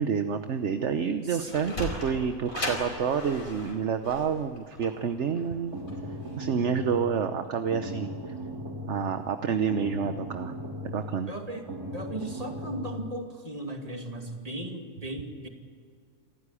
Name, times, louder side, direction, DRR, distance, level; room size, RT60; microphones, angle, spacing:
voice 1, 0.0-5.7 6.4-8.1 8.9-10.5 10.8-11.3, right 7 dB, 55° right, 8 dB, 1.1 m, -28 dB
Sliding door, 1.2-6.4, left 1 dB, 60° left, 5.1 m, -37 dB
sound 1, 5.4-13.1, equal, 80° right, 3.2 m, -38 dB
voice 2, 11.3-11.6 11.9-15.5, right 1 dB, 25° right, 3 dB, 2.6 m, -37 dB
28.0 x 15.0 x 9.9 m, 2.2 s
omnidirectional pair, 1.6 m